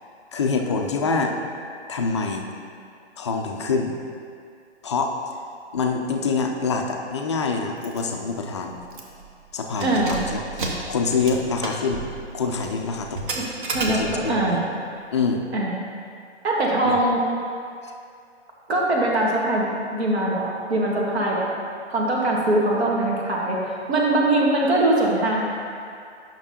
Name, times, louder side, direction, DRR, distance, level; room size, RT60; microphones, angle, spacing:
voice 1, 0.3-1.4 1.9-2.5 3.2-4.0 4.8-5.2 5.7-8.8 9.5-12.0 12.3-13.2 13.9-14.6 15.1-15.5 16.8-17.0 17.8-17.9, left 4 dB, 25° left, 2 dB, 0.4 m, -25 dB
Keys jangling, 7.8-8.0 8.3-8.4 8.9-9.3 9.7-14.4, right 2 dB, 45° right, 1.0 m, -32 dB
voice 2, 9.8-10.2 13.4-13.5 13.7-14.7 15.5-15.7 16.4-17.2 18.7-21.5 21.9-23.6 23.9-25.4, right 1 dB, 65° right, -3 dB, 1.6 m, -22 dB
8.6 x 5.9 x 2.8 m, 2.3 s
figure-of-eight pair, 130°, 34 cm